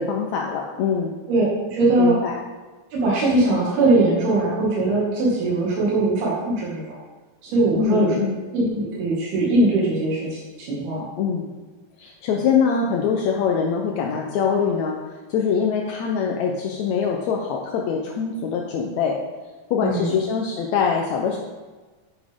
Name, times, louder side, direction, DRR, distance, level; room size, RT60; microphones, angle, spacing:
voice 1, 0.0-1.2 2.0-2.4 7.7-8.4 11.2-11.5 12.0-15.0 15.3-19.2 19.7-21.4, left 6 dB, 75° left, 0 dB, 1.7 m, -23 dB
voice 2, 1.3-2.2 2.9-7.0 7.4-8.1 8.5-11.0 19.8-20.1, right 2 dB, 90° right, -5 dB, 4.2 m, -21 dB
10.5 x 9.9 x 3.6 m, 1.3 s
omnidirectional pair, 4.3 m